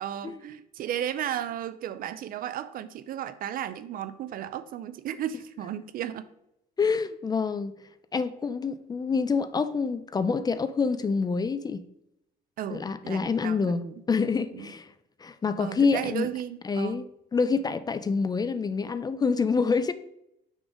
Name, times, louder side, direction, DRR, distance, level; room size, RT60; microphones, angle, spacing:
voice 1, 0.0-6.3 12.6-14.0 14.5-14.7 15.6-17.1, right 10 dB, 60° right, 0.5 m, -34 dB
voice 2, 6.8-7.7 8.1-11.8 12.7-13.8 14.1-14.9 15.2-16.3 16.6-19.9, left 5 dB, 25° left, 0.4 m, -27 dB
6.2 x 3.9 x 5.1 m
cardioid pair, 110°, 17 cm